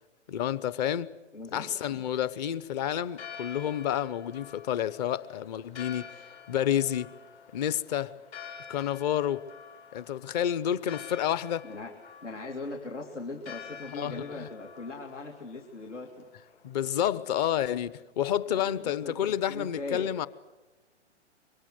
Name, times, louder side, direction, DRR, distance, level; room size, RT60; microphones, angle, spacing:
voice 1, 0.3-1.1 1.5-6.1 6.5-7.1 7.5-8.1 8.7-9.5 9.9-11.7 13.9-14.5 16.6-20.3, left 10 dB, 35° left, 0.9 m, -29 dB
voice 2, 1.3-2.0 11.6-11.9 12.2-16.1 16.4-16.6 18.6-20.1, left 3 dB, 85° left, 2.5 m, -40 dB
Church bell, 3.0-17.1, left 7 dB, 65° left, 5.8 m, -48 dB
24.5 x 23.5 x 7.9 m
hypercardioid pair, 125°, 35 cm